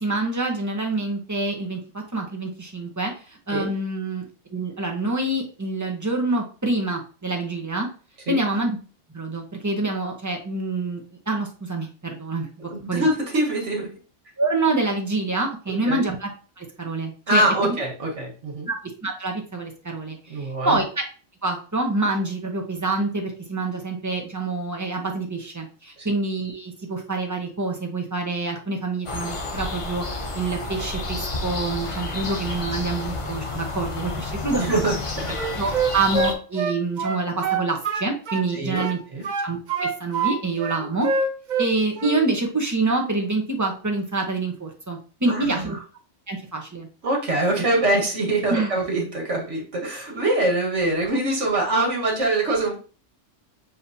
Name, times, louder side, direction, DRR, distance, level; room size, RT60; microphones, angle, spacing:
voice 1, 0.0-7.9 8.3-8.8 9.1-13.1 14.4-16.3 16.6-17.7 18.7-18.8 19.0-20.8 21.4-34.6 35.5-39.0 39.4-41.1 41.6-45.8 46.3-46.9 48.5-48.7, right 3 dB, 15° right, 1 dB, 0.9 m, -26 dB
voice 2, 12.7-13.9 15.8-16.1 17.3-18.7 20.3-20.8 26.0-26.1 32.9-33.0 34.6-35.4 38.5-39.2 40.8-40.9 45.3-45.8 47.0-52.8, right 1 dB, 80° right, -1 dB, 1.8 m, -24 dB
sound 1, 29.0-36.3, left 3 dB, 35° left, 0.5 m, -30 dB
Wind instrument woodwind instrument, 35.3-38.5 38.8-40.3 40.6-41.7 42.0-42.3, right 4 dB, 50° right, 0.6 m, -25 dB
6.8 x 2.8 x 2.7 m, 0.37 s
omnidirectional pair, 1.2 m